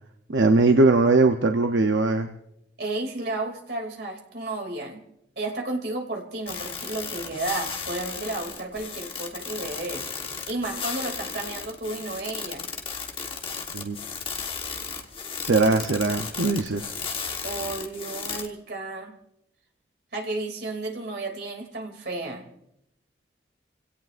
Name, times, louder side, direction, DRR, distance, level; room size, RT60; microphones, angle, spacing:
voice 1, 0.3-2.3 13.7-14.0 15.5-17.0, right 3 dB, 85° right, 5 dB, 0.7 m, -20 dB
voice 2, 2.8-5.0 5.4-10.1 10.5-12.7 17.4-19.1 20.1-22.4, right 2 dB, 65° right, 2 dB, 2.7 m, -32 dB
sound 1, 6.5-18.5, left 5 dB, 30° left, 1.3 m, -35 dB
29.0 x 17.0 x 2.5 m, 0.79 s
head